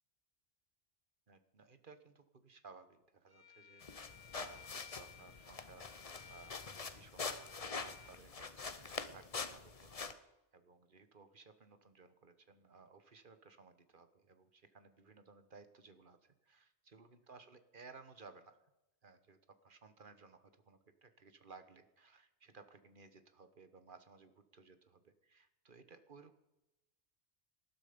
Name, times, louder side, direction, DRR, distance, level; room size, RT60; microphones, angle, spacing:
voice 1, 1.3-10.2 10.5-18.6 19.0-26.4, right 4 dB, 50° right, 10 dB, 1.3 m, -60 dB
Bowed string instrument, 3.3-8.1, left 8 dB, 70° right, 5.7 m, -59 dB
sound 1, 3.8-10.1, left 4 dB, 35° left, 0.9 m, -45 dB
19.0 x 12.0 x 5.2 m, 0.95 s
omnidirectional pair, 1.2 m